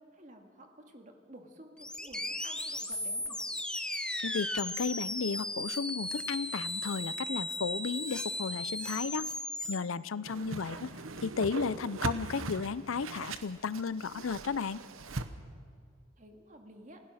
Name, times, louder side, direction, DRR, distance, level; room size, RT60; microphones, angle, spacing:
voice 1, 0.1-3.4 10.6-10.8 16.2-17.0, right 1 dB, 40° right, 3 dB, 2.1 m, -52 dB
sound 1, 1.8-9.8, left 1 dB, 5° left, 0.6 m, -36 dB
voice 2, 4.2-9.3 9.7-10.9 11.2-14.8, left 5 dB, 80° left, 17 dB, 0.6 m, -34 dB
Whoosh swoosh swish, 10.2-15.3, right 3 dB, 85° right, 1.1 m, -40 dB
27.0 x 16.0 x 6.4 m, 2.3 s
head